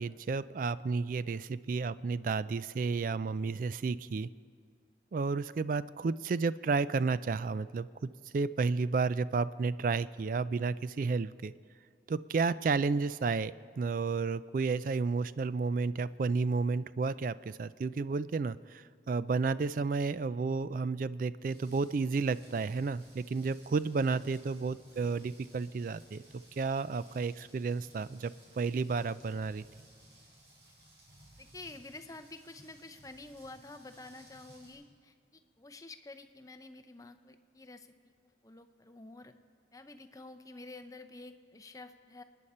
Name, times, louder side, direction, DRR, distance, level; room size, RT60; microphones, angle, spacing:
voice 1, 0.0-4.3 5.1-11.5 12.1-29.6, right 4 dB, 45° right, 16 dB, 0.3 m, -32 dB
Rain, 21.5-34.7, right 1 dB, 70° right, 5.2 m, -59 dB
voice 2, 31.4-35.1 35.6-38.1 38.4-39.3 39.7-42.2, left 2 dB, 20° left, 9 dB, 0.6 m, -49 dB
28.5 x 10.0 x 4.3 m, 2.1 s
head